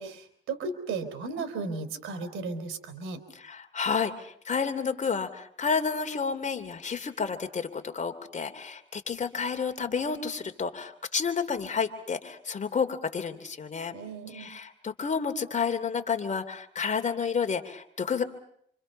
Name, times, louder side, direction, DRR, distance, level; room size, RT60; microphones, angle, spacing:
voice 1, 0.0-3.2 13.9-14.5, right 4 dB, 85° right, 8 dB, 3.6 m, -35 dB
voice 2, 3.3-13.9 14.3-18.2, left 5 dB, 35° left, 7 dB, 2.8 m, -30 dB
28.0 x 26.0 x 5.5 m, 0.66 s
cardioid pair, 90°, 20 cm